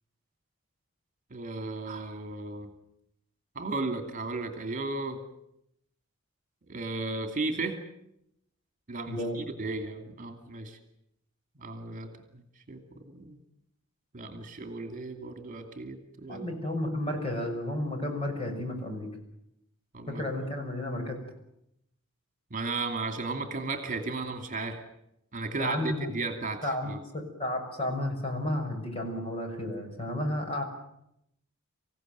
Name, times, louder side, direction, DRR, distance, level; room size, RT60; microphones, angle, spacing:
voice 1, 1.3-2.7 3.5-5.2 6.7-7.8 8.9-10.8 11.6-12.1 12.3-12.4 12.7-13.4 14.1-16.6 19.9-20.2 22.5-24.8 25.3-27.0, right 3 dB, 40° right, 6 dB, 2.6 m, -35 dB
voice 2, 9.1-9.4 16.3-19.1 20.1-21.2 25.5-26.1 26.6-30.6, left 1 dB, 30° left, 3 dB, 6.4 m, -32 dB
26.0 x 16.5 x 9.3 m, 0.80 s
head